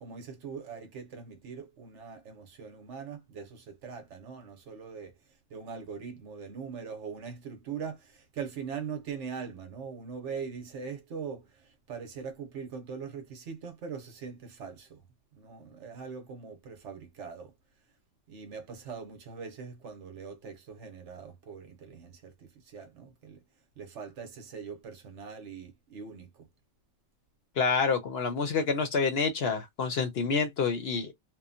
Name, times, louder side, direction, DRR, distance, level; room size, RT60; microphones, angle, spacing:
voice 1, 0.0-5.1 5.5-15.0 15.3-17.5 18.3-23.4 23.8-26.5, right 6 dB, 65° right, 1.0 m, -41 dB
voice 2, 27.6-31.1, left 5 dB, 60° left, 0.8 m, -28 dB
3.0 x 2.1 x 2.6 m
omnidirectional pair, 1.4 m